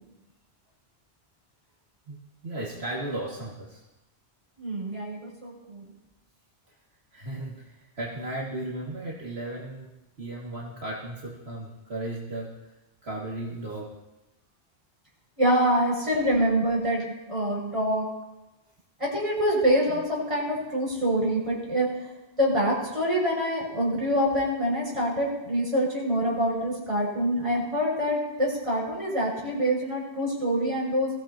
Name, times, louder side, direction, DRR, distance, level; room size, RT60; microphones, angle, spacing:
voice 1, 2.1-3.8 7.1-9.9 10.2-12.7 13.0-14.0, right 1 dB, 70° right, -5 dB, 2.5 m, -35 dB
voice 2, 4.6-5.9 15.4-18.1 19.0-21.9 22.4-31.1, equal, 30° right, -4 dB, 6.6 m, -25 dB
23.0 x 16.0 x 2.9 m, 1.0 s
omnidirectional pair, 1.1 m